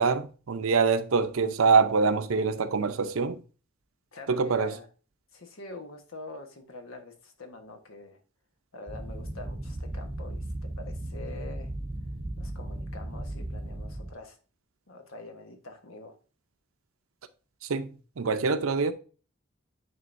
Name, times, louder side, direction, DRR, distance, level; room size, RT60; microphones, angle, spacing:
voice 1, 0.0-3.4 4.3-4.8 17.6-18.9, right 5 dB, 85° right, 0.6 m, -25 dB
voice 2, 4.1-4.9 5.3-8.2 8.7-11.7 12.4-14.4 14.9-16.1, left 2 dB, 80° left, 1.2 m, -45 dB
sound 1, 8.9-14.1, right 1 dB, 25° right, 0.7 m, -36 dB
9.6 x 3.8 x 2.6 m
head